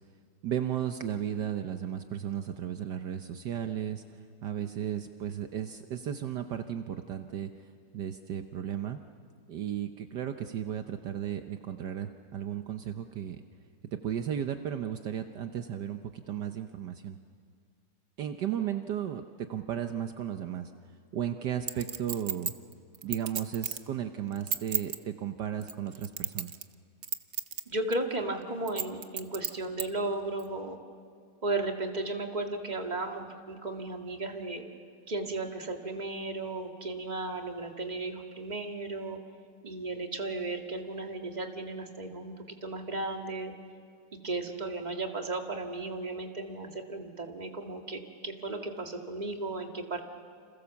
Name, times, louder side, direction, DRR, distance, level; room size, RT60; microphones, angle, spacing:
voice 1, 0.4-4.0 4.4-7.5 7.9-9.0 9.5-13.4 13.9-17.2 18.2-20.7 21.1-22.5 23.0-26.5, right 10 dB, 70° right, 7 dB, 1.5 m, -34 dB
Chink clink, 21.7-23.9 24.3-25.0 25.6-26.7 27.0-27.6 27.9-28.0 28.7-29.9 30.4-30.5, right 8 dB, 50° right, 0.9 m, -33 dB
voice 2, 27.7-30.8 31.4-34.6 35.1-39.2 39.6-43.5 44.2-50.0, right 2 dB, 25° right, 3 dB, 2.1 m, -35 dB
30.0 x 27.5 x 7.1 m, 2.2 s
omnidirectional pair, 2.0 m